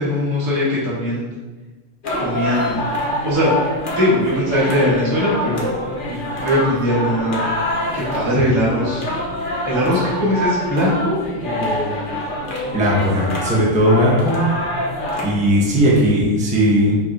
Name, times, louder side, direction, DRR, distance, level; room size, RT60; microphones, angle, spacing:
voice 1, 0.0-1.3 2.2-2.8 3.2-3.5 4.0-5.7 6.1-7.4 7.9-9.1 9.6-12.0, left 1 dB, 80° right, -8 dB, 3.2 m, -20 dB
sound 1, 2.0-15.8, left 1 dB, 45° left, 0.6 m, -26 dB
voice 2, 12.7-14.4 15.2-16.9, equal, 5° right, -5 dB, 0.9 m, -17 dB
6.8 x 5.5 x 3.0 m, 1.3 s
omnidirectional pair, 2.4 m